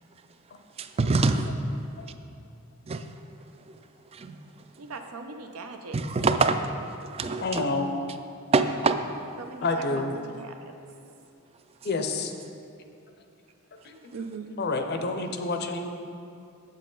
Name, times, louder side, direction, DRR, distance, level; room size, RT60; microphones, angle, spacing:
voice 1, 0.8-1.5 2.9-3.1 3.7-3.8 4.1-4.4 5.9-6.6 7.1-7.6 8.5-9.0, right 3 dB, 30° right, 8 dB, 0.3 m, -24 dB
voice 2, 4.8-6.0 9.4-9.6 9.9-10.0 10.4-10.5 14.1-14.5, right 4 dB, 85° right, 5 dB, 0.7 m, -39 dB
voice 3, 7.4-7.9 9.6-10.2 11.8-12.3 13.8-14.1 14.4-15.9, left 3 dB, 50° left, 6 dB, 0.6 m, -28 dB
7.5 x 7.4 x 3.8 m, 2.6 s
head